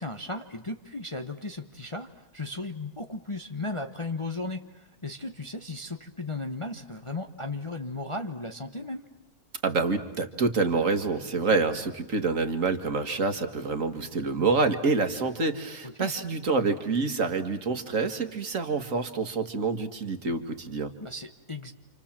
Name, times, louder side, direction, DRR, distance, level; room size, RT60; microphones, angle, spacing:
voice 1, 0.0-9.1 15.8-16.1 21.0-21.7, left 2 dB, 25° left, 5 dB, 1.0 m, -36 dB
voice 2, 9.6-20.9, right 4 dB, 55° right, 8 dB, 2.0 m, -27 dB
29.5 x 26.5 x 7.4 m, 1.0 s
omnidirectional pair, 1.7 m